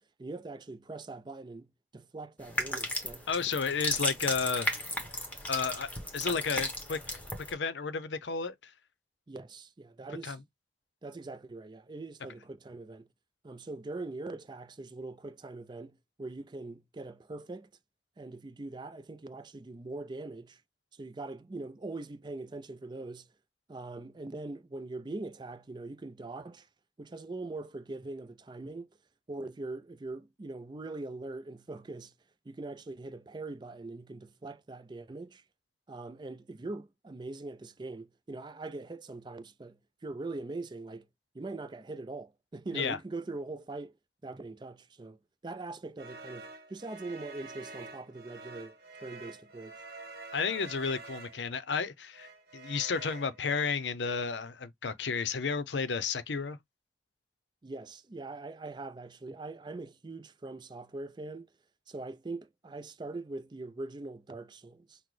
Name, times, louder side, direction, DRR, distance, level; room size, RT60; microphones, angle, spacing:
voice 1, 0.0-1.7 1.9-3.3 9.3-10.4 11.0-13.1 13.4-17.7 18.2-20.6 20.9-23.3 23.7-26.7 27.0-28.9 29.3-32.1 32.5-35.4 35.9-41.1 41.3-43.9 44.2-45.2 45.4-48.7 49.0-49.9 57.6-61.5 61.9-65.0, right 2 dB, 25° right, 0.4 m, -42 dB
sound 1, 2.4-7.5, left 1 dB, 10° left, 1.0 m, -35 dB
voice 2, 3.3-4.7 5.5-7.2 7.5-8.7 10.2-10.4 42.7-43.0 50.3-56.6, left 5 dB, 90° left, 0.6 m, -32 dB
sound 2, 46.0-51.6 52.1-53.9, right 3 dB, 55° right, 1.2 m, -47 dB
5.9 x 2.1 x 3.2 m
head